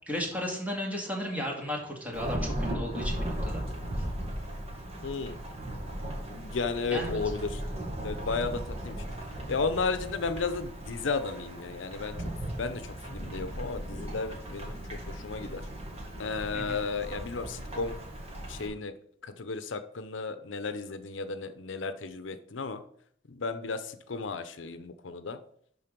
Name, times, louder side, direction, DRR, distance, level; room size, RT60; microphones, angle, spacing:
voice 1, 0.1-3.6 6.9-7.2 16.5-16.8, equal, 10° right, -1 dB, 2.2 m, -34 dB
Thunderstorm / Rain, 2.1-18.7, right 1 dB, 35° right, 1.9 m, -37 dB
voice 2, 5.0-5.4 6.3-7.6 8.0-9.0 9.5-12.1 12.6-12.8 13.1-14.7 15.2-15.6 16.2-17.9 18.5-18.9 19.4-22.8 23.3-23.8 24.1-25.4, left 4 dB, 80° left, 10 dB, 0.7 m, -33 dB
11.5 x 3.9 x 5.2 m, 0.64 s
head